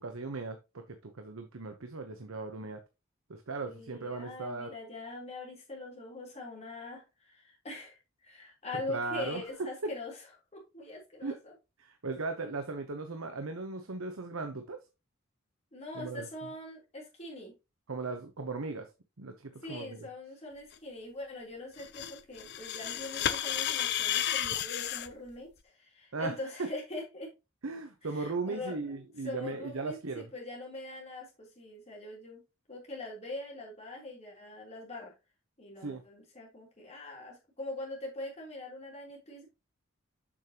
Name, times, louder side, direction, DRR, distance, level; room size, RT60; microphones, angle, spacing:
voice 1, 0.0-2.8 3.3-4.7 8.9-9.4 9.8-9.9 11.2-11.4 11.8-14.8 15.9-16.3 17.9-18.9 19.2-20.1 26.1-26.7 27.6-30.3 35.8-36.0, right 3 dB, 85° right, 0.9 m, -37 dB
voice 2, 3.6-10.1 10.5-11.5 15.7-17.5 19.6-27.3 28.1-29.0 29.2-32.4 32.7-35.1 35.6-39.5, left 2 dB, 35° left, 3.3 m, -42 dB
sound 1, 21.8-25.1, left 10 dB, 55° left, 0.6 m, -32 dB
7.3 x 6.7 x 2.9 m
head